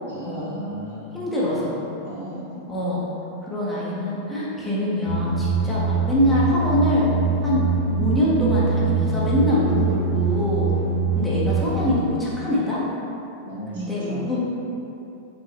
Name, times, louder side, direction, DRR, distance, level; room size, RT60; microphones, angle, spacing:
voice 1, 0.1-1.2 2.0-2.6 13.4-14.3, right 1 dB, 65° right, -9 dB, 1.4 m, -36 dB
voice 2, 1.1-1.8 2.7-3.0 3.4-7.1 7.4-7.7 7.9-10.7 11.1-12.8 13.7-14.4, left 1 dB, 10° left, -9 dB, 1.1 m, -24 dB
sound 1, 5.1-11.7, right 4 dB, 15° right, 1.4 m, -23 dB
6.2 x 2.5 x 3.1 m, 2.8 s
figure-of-eight pair, 90°, 0 cm